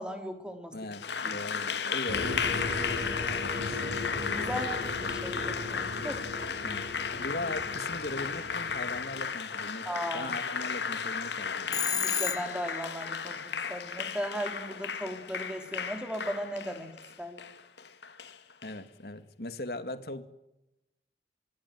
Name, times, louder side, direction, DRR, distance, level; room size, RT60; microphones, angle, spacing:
voice 1, 0.0-1.4 4.3-6.3 9.9-10.3 11.9-16.9 17.2-17.4, equal, 5° right, 6 dB, 3.5 m, -37 dB
voice 2, 0.7-3.8 6.6-6.9 7.2-11.9 18.6-20.2, left 2 dB, 60° left, 10 dB, 2.2 m, -39 dB
Applause, 0.9-18.7, left 6 dB, 75° left, 2.1 m, -34 dB
sound 1, 2.1-9.2, left 2 dB, 50° right, 5.9 m, -38 dB
Telephone, 11.7-12.8, left 8 dB, 20° left, 1.1 m, -31 dB
25.5 x 18.5 x 9.5 m, 0.90 s
head